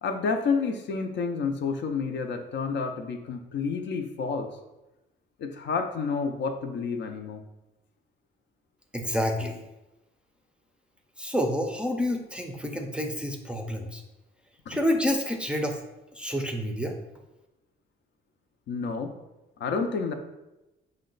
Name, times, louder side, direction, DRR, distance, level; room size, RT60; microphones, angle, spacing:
voice 1, 0.0-4.5 5.4-7.4 14.7-14.8 18.7-19.1 19.6-20.1, left 5 dB, 65° left, 5 dB, 0.5 m, -29 dB
voice 2, 8.9-9.6 11.2-14.0 14.7-15.8 16.1-17.0, equal, 5° right, 3 dB, 0.5 m, -28 dB
5.1 x 2.2 x 3.8 m, 0.99 s
cardioid pair, 90°, 20 cm